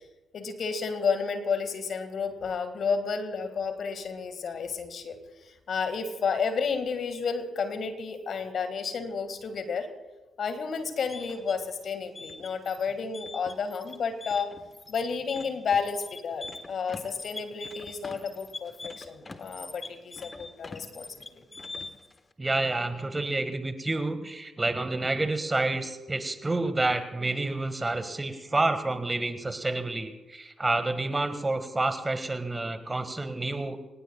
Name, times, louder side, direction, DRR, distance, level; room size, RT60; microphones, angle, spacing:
voice 1, 0.3-5.2 5.4-9.9 10.4-14.5 14.9-21.1 21.3-21.4, left 5 dB, 60° left, 8 dB, 1.9 m, -31 dB
sound 1, 10.8-22.1, left 3 dB, 30° left, 1.4 m, -43 dB
voice 2, 22.4-33.8, right 2 dB, 25° right, 9 dB, 1.8 m, -29 dB
26.0 x 19.5 x 2.4 m, 1.1 s
hypercardioid pair, 40°, 0 cm